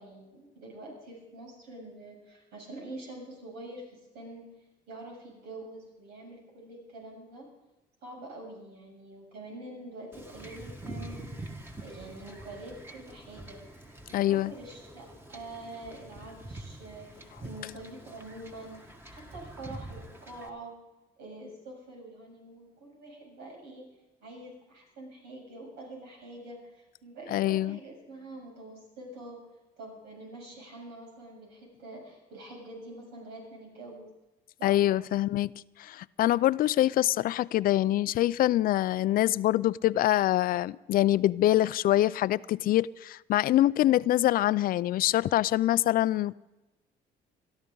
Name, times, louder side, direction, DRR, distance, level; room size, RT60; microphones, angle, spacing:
voice 1, 0.0-4.5 4.9-7.5 8.0-13.6 14.1-20.8 21.2-23.9 24.2-29.5 29.8-34.1 34.6-35.1, right 2 dB, 85° right, 7.2 m, -46 dB
Wind / Ocean / Boat Water vehicle, 10.1-20.5, right 1 dB, 15° right, 1.7 m, -45 dB
voice 2, 14.1-14.5 27.3-27.8 34.6-35.5 35.8-46.4, left 14 dB, 60° left, 0.4 m, -25 dB
22.5 x 13.5 x 3.9 m
cardioid pair, 110°, 17 cm